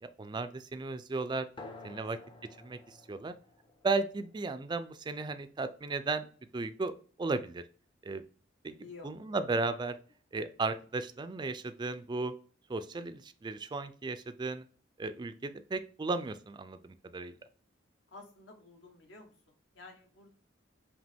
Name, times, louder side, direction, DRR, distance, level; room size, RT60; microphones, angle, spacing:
voice 1, 0.0-1.5 1.8-2.2 2.6-2.8 3.1-3.3 3.8-6.3 6.5-6.9 7.2-7.6 8.0-8.2 8.6-8.7 9.0-10.0 10.3-12.3 12.7-14.6 15.0-17.4, right 3 dB, 25° right, 11 dB, 0.3 m, -35 dB
sound 1, 1.6-6.6, left 2 dB, 25° left, 0.5 m, -53 dB
voice 2, 8.7-9.1 18.1-19.3 19.7-20.3, left 3 dB, 70° left, 2 dB, 1.3 m, -51 dB
5.1 x 2.9 x 3.4 m, 0.41 s
head